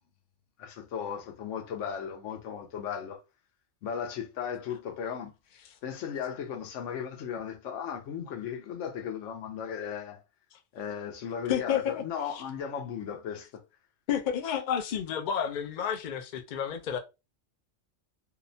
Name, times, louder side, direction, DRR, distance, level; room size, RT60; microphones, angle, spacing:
voice 1, 0.6-3.2 3.8-10.2 10.7-13.6, left 7 dB, 75° left, 1.0 m, -36 dB
voice 2, 11.5-12.0 12.3-12.4 14.1-17.0, left 8 dB, 60° left, 0.5 m, -30 dB
2.7 x 2.1 x 2.6 m
omnidirectional pair, 1.3 m